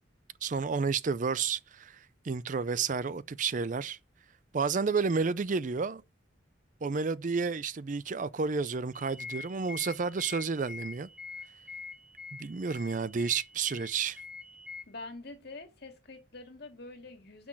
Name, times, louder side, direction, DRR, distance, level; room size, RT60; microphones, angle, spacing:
voice 1, 0.4-4.0 4.5-6.0 6.8-11.1 12.4-14.2, right 5 dB, 40° right, 0.4 m, -31 dB
sound 1, 8.9-14.8, left 4 dB, 5° right, 2.0 m, -45 dB
voice 2, 14.9-17.5, left 3 dB, 55° left, 2.3 m, -45 dB
9.8 x 6.2 x 6.2 m
head